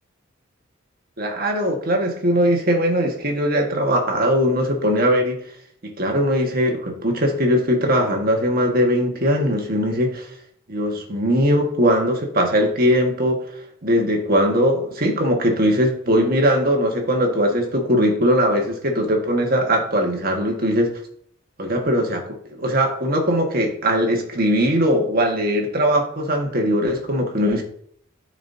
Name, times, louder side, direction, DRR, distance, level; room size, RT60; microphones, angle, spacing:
voice 1, 1.2-5.4 5.8-10.3 10.7-13.4 13.8-20.9 21.6-27.6, equal, 50° right, 2 dB, 1.5 m, -20 dB
13.0 x 4.9 x 2.7 m, 0.64 s
head